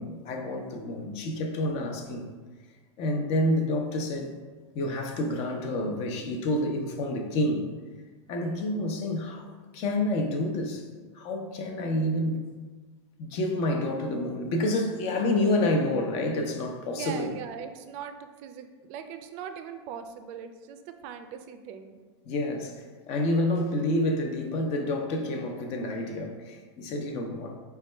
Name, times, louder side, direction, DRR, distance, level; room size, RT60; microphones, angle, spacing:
voice 1, 0.0-2.2 3.0-4.4 4.8-7.7 8.3-9.5 9.7-10.9 11.2-12.4 13.2-17.3 22.2-27.6, left 1 dB, 45° left, 4 dB, 0.5 m, -28 dB
voice 2, 16.9-22.0, right 8 dB, 50° right, 8 dB, 0.4 m, -40 dB
4.1 x 2.2 x 3.2 m, 1.4 s
supercardioid pair, 120°, 15 cm